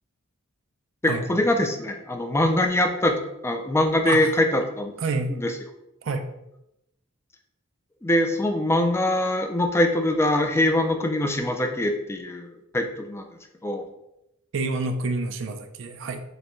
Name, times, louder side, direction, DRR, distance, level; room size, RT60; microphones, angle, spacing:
voice 1, 1.0-4.9 5.3-5.5 8.0-13.3 13.6-13.9, left 1 dB, 10° left, 4 dB, 0.3 m, -23 dB
voice 2, 5.0-5.3 6.0-6.2 14.5-16.2, right 3 dB, 60° right, 7 dB, 0.4 m, -28 dB
6.5 x 2.2 x 3.0 m, 0.87 s
head